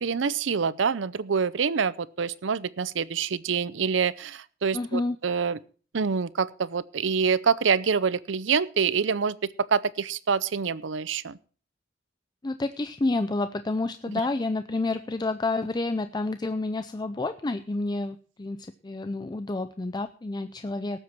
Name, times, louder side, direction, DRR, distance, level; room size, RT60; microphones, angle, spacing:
voice 1, 0.0-5.6 5.9-11.4, right 6 dB, 75° right, 19 dB, 0.6 m, -26 dB
voice 2, 4.7-5.2 12.4-21.0, left 2 dB, 20° left, 11 dB, 0.5 m, -29 dB
18.5 x 7.8 x 4.5 m, 0.41 s
head